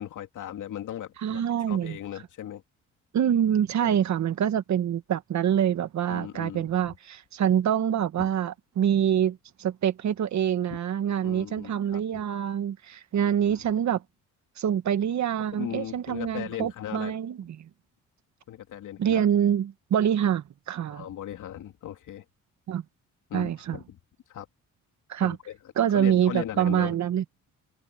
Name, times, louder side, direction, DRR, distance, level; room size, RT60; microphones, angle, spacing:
voice 1, 0.0-2.6 3.8-3.9 6.1-6.9 8.2-8.3 10.7-10.8 11.2-12.2 13.5-13.7 15.5-17.2 18.5-19.3 20.9-22.2 23.3-24.0 24.3-24.5 25.2-25.6 25.9-27.0, left 11 dB, 70° left, 2.9 m, -38 dB
voice 2, 1.2-2.0 3.1-14.0 14.6-17.7 19.0-21.0 22.7-22.8 23.3-23.8 25.1-25.4 25.8-27.2, right 9 dB, 60° right, 1.5 m, -25 dB
cardioid pair, 95°, 32 cm